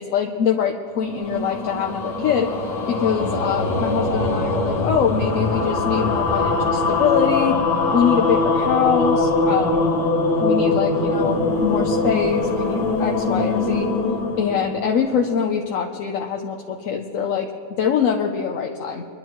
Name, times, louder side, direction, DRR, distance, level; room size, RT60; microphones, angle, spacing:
voice 1, 0.0-2.5 2.9-7.6 7.9-9.9 10.4-13.9 14.4-17.5 17.8-19.1, left 7 dB, 60° left, 2 dB, 1.0 m, -23 dB
sound 1, 0.9-15.4, left 3 dB, 80° left, 2.3 m, -22 dB
25.0 x 11.5 x 3.1 m, 2.8 s
omnidirectional pair, 1.8 m